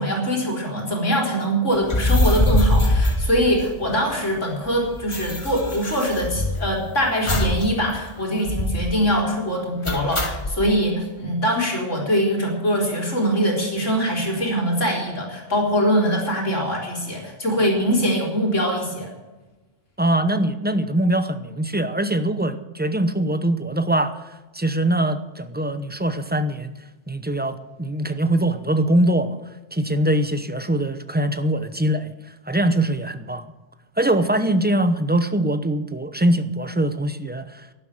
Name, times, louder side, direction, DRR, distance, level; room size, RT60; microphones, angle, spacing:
voice 1, 0.0-19.1, equal, 80° left, -1 dB, 4.2 m, -23 dB
sound 1, 1.8-4.1 4.4-4.5 4.7-6.8 7.3-7.7 8.0-8.1 8.4-8.9 9.8-10.6, left 1 dB, 25° left, 1.5 m, -22 dB
voice 2, 20.0-24.2 24.5-26.7 27.1-29.4 29.7-32.1 32.5-33.4 34.0-37.6, right 1 dB, 10° right, 10 dB, 0.7 m, -22 dB
12.5 x 11.0 x 8.9 m, 1.1 s
omnidirectional pair, 1.3 m